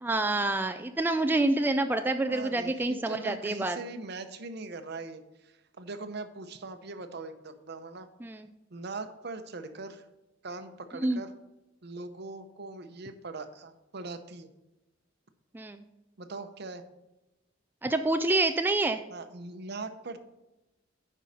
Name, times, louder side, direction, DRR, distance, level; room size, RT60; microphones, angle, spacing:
voice 1, 0.0-3.8 8.2-8.5 11.0-11.2 15.5-15.8 17.8-19.0, right 2 dB, 10° right, 7 dB, 0.3 m, -27 dB
voice 2, 2.3-8.1 8.7-10.1 10.4-11.3 11.8-14.5 16.2-16.8 19.1-20.2, right 3 dB, 60° right, 9 dB, 0.8 m, -41 dB
9.3 x 5.5 x 5.0 m, 0.99 s
head